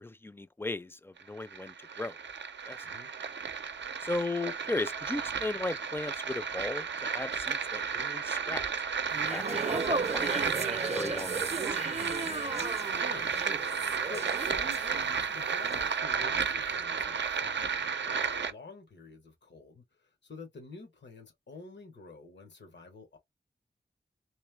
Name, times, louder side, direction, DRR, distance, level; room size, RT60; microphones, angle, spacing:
voice 1, 0.0-2.2 2.7-2.9 4.0-8.6 9.3-11.8, left 2 dB, 15° left, 0.4 m, -37 dB
sound 1, 1.2-18.5, right 6 dB, 90° right, 0.5 m, -33 dB
voice 2, 2.8-3.1 12.9-23.2, left 3 dB, 90° left, 1.1 m, -49 dB
sound 2, 9.1-15.3 15.6-15.9, right 3 dB, 40° right, 0.5 m, -35 dB
3.1 x 3.1 x 3.3 m
wide cardioid pair, 75°, 18 cm